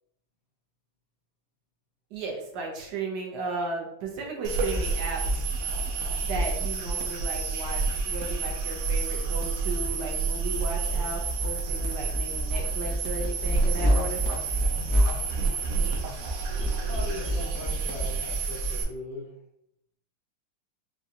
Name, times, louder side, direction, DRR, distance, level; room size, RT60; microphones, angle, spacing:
voice 1, 2.1-5.5 6.2-14.2, right 3 dB, 65° right, -1 dB, 1.2 m, -35 dB
sound 1, 4.4-18.8, right 3 dB, 85° right, 0.8 m, -28 dB
voice 2, 16.8-19.4, left 1 dB, 65° left, -6 dB, 2.0 m, -39 dB
4.9 x 2.3 x 2.7 m, 0.79 s
omnidirectional pair, 2.2 m